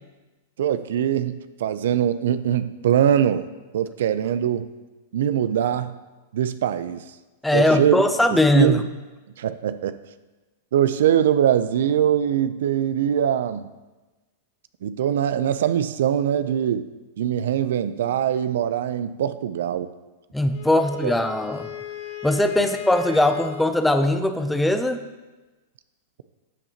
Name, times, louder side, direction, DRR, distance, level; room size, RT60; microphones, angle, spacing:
voice 1, 0.6-3.5 3.7-4.7 5.1-5.9 6.3-7.0 7.5-8.0 8.5-8.9 9.4-10.0 10.7-13.7 14.8-16.9 17.2-19.9 21.0-21.1 22.6-22.7, right 9 dB, 70° right, 13 dB, 0.4 m, -22 dB
voice 2, 7.4-8.8 20.3-21.7 22.2-25.0, left 1 dB, 5° left, 8 dB, 0.5 m, -20 dB
Wind instrument woodwind instrument, 20.5-23.8, left 10 dB, 70° left, 1.9 m, -37 dB
13.0 x 6.9 x 2.9 m, 1.2 s
hypercardioid pair, 125°, 0 cm